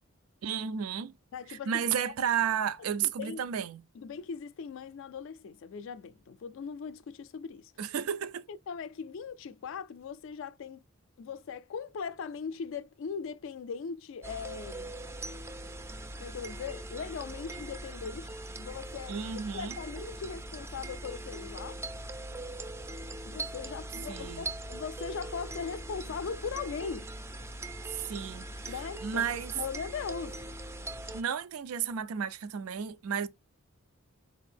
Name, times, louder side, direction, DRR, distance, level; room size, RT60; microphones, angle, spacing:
voice 1, 0.4-1.1 1.5-3.8 7.8-8.4 19.1-19.7 24.1-24.5 27.9-28.7 29.0-29.5 31.1-33.3, right 8 dB, 90° right, 0.4 m, -32 dB
voice 2, 1.3-1.9 3.0-3.4 3.9-7.7 8.5-10.8 11.2-14.9 16.2-19.2 19.5-21.9 23.3-27.1 28.7-30.4, left 6 dB, 60° left, 0.3 m, -39 dB
sound 1, 14.2-31.2, right 1 dB, 10° right, 0.4 m, -41 dB
4.1 x 2.6 x 3.3 m
head